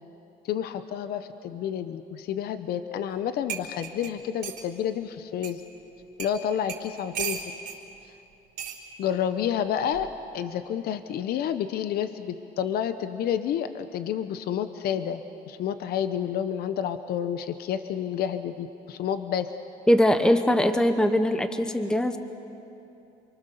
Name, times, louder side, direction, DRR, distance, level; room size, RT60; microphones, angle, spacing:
voice 1, 0.4-5.6 6.2-7.4 9.0-10.1 10.3-19.5, left 9 dB, 65° left, 10 dB, 0.9 m, -29 dB
sound 1, 3.1-3.2 3.5-4.7 5.4-5.5 6.2-6.4 6.7-7.8 8.6-8.8 9.9-10.2, right 8 dB, 75° right, 3.9 m, -35 dB
voice 2, 19.9-22.2, left 1 dB, 5° left, 8 dB, 1.0 m, -21 dB
28.5 x 23.5 x 6.9 m, 2.9 s
cardioid pair, 110°, 17 cm